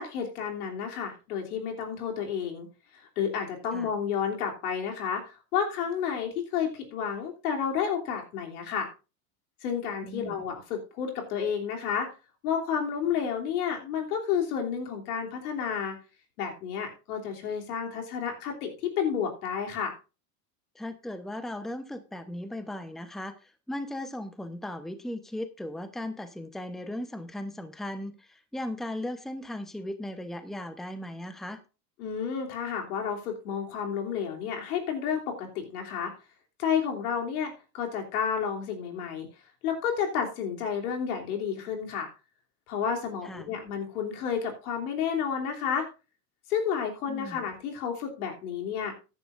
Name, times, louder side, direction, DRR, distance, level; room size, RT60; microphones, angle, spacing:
voice 1, 0.0-2.7 3.2-8.9 9.6-12.1 12.4-16.0 16.4-19.9 32.0-36.1 36.6-39.3 39.6-42.1 42.7-45.9 46.5-48.9, left 7 dB, 80° left, 2 dB, 3.2 m, -31 dB
voice 2, 10.0-10.4 20.7-31.6 43.2-43.6 47.1-47.5, left 1 dB, ahead, 9 dB, 1.0 m, -37 dB
14.5 x 10.5 x 2.6 m, 0.31 s
hypercardioid pair, 100°, 45 cm